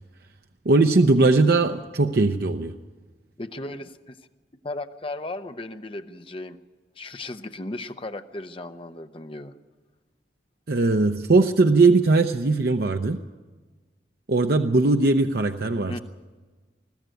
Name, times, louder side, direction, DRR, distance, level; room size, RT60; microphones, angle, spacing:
voice 1, 0.7-2.7 10.7-13.2 14.3-16.0, right 3 dB, 60° right, 6 dB, 0.7 m, -19 dB
voice 2, 3.4-4.2 4.6-6.6 7.0-9.5 15.9-16.0, left 2 dB, 30° left, 8 dB, 0.9 m, -36 dB
21.5 x 14.0 x 9.1 m, 1.3 s
head